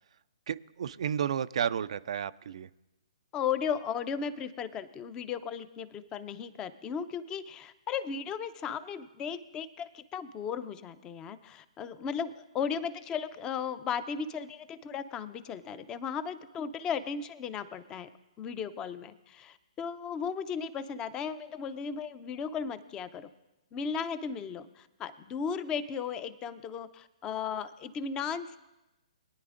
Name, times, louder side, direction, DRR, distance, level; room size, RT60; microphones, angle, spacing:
voice 1, 0.5-2.7, right 8 dB, 60° right, 14 dB, 0.4 m, -32 dB
voice 2, 3.3-18.1 18.4-23.3 23.7-28.6, left 7 dB, 20° left, 14 dB, 0.6 m, -36 dB
22.0 x 10.0 x 2.5 m, 1.0 s
hypercardioid pair, 135°, 4 cm